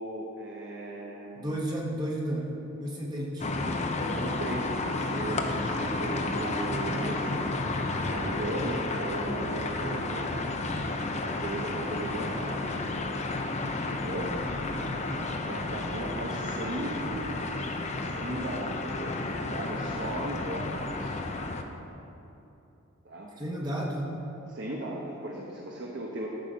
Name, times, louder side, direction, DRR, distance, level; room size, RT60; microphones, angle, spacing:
voice 1, 0.0-1.5 4.0-7.6 8.0-10.5 11.2-12.6 13.9-14.4 15.4-17.8 18.0-19.1 19.4-21.1 23.0-23.3 24.5-26.3, right 1 dB, 55° right, -2 dB, 1.0 m, -37 dB
voice 2, 1.4-2.5 2.8-3.5 12.1-13.1 14.2-15.5 23.4-24.1, right 1 dB, 20° right, -3 dB, 1.1 m, -35 dB
sound 1, 3.4-21.6, left 2 dB, 30° left, 0.6 m, -32 dB
13.0 x 6.9 x 5.0 m, 2.9 s
head